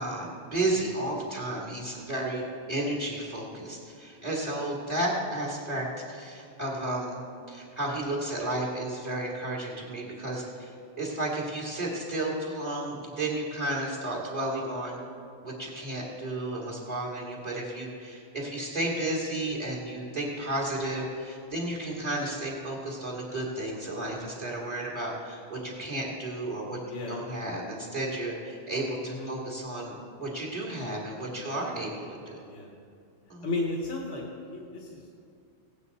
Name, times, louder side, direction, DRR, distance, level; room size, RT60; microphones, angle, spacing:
voice 1, 0.0-10.7 11.0-15.0 15.4-26.8 27.1-31.9 32.3-32.4 33.3-33.4, right 1 dB, 35° right, -4 dB, 2.2 m, -32 dB
voice 2, 26.8-27.2 29.0-29.3 31.3-31.5 32.4-32.7 33.4-35.1, left 2 dB, 75° left, -2 dB, 1.6 m, -34 dB
17.0 x 8.8 x 4.1 m, 2.4 s
omnidirectional pair, 1.2 m